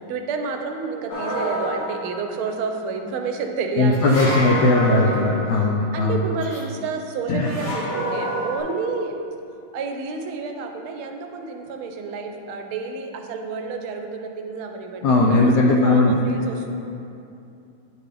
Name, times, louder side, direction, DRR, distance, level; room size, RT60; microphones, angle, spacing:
voice 1, 0.0-5.3 5.9-9.2 9.7-16.7, right 4 dB, 85° right, 4 dB, 1.5 m, -30 dB
sound 1, 1.1-2.4 4.0-5.8 7.4-8.6, equal, 50° left, 1.4 m, -28 dB
voice 2, 3.7-6.5 7.3-7.5 15.0-16.2, left 2 dB, 80° left, -1 dB, 0.9 m, -18 dB
9.7 x 3.9 x 3.3 m, 2.7 s
omnidirectional pair, 2.3 m